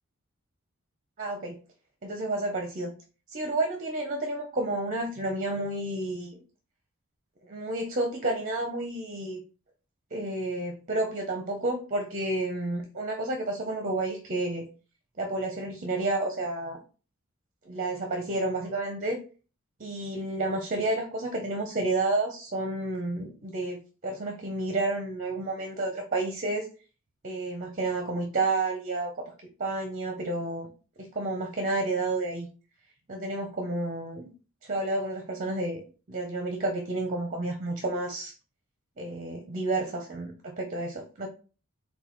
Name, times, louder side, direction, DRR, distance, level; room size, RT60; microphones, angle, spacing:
voice 1, 1.2-1.6 2.0-2.9 3.3-6.4 7.5-9.4 10.1-14.6 15.2-16.8 17.7-19.2 19.8-23.8 24.0-26.7 27.2-29.2 29.6-30.7 31.0-32.5 33.1-34.3 34.6-38.4 39.0-41.3, right 2 dB, 40° right, 3 dB, 0.6 m, -30 dB
3.9 x 2.3 x 4.3 m, 0.36 s
head